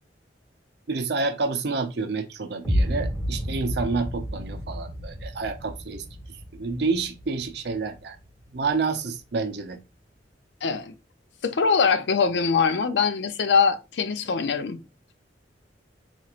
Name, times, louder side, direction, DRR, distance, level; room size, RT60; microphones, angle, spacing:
voice 1, 0.9-6.0 6.5-8.2 8.5-9.8, right 4 dB, 65° right, 0.6 m, -28 dB
sound 1, 2.6-8.7, equal, 10° left, 1.0 m, -31 dB
voice 2, 10.6-10.9 11.4-14.8, left 5 dB, 70° left, 0.5 m, -22 dB
4.2 x 3.0 x 2.4 m
head